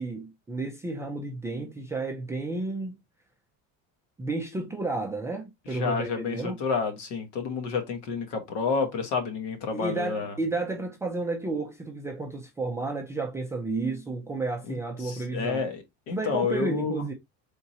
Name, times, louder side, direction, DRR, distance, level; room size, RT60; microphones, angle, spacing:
voice 1, 0.0-3.0 4.2-6.6 9.7-15.6 16.1-17.1, right 3 dB, 10° right, 0.4 m, -32 dB
voice 2, 5.7-10.4 14.7-14.8 15.0-17.0, left 5 dB, 65° left, 1.3 m, -30 dB
4.3 x 3.6 x 2.7 m
cardioid pair, 180°, 32 cm